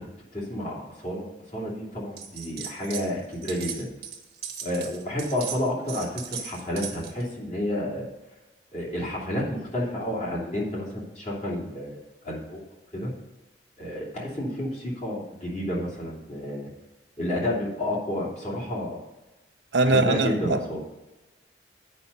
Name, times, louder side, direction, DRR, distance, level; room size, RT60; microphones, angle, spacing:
voice 1, 0.3-3.9 4.6-8.1 8.7-12.6 12.9-13.1 13.8-16.7 17.2-19.0 19.8-20.8, left 1 dB, 40° left, -4 dB, 2.7 m, -30 dB
sound 1, 2.2-3.1 3.3-7.2, right 8 dB, 55° right, 1.2 m, -37 dB
voice 2, 19.7-20.8, right 2 dB, 80° right, 7 dB, 0.7 m, -22 dB
8.3 x 5.6 x 6.6 m, 1.1 s
head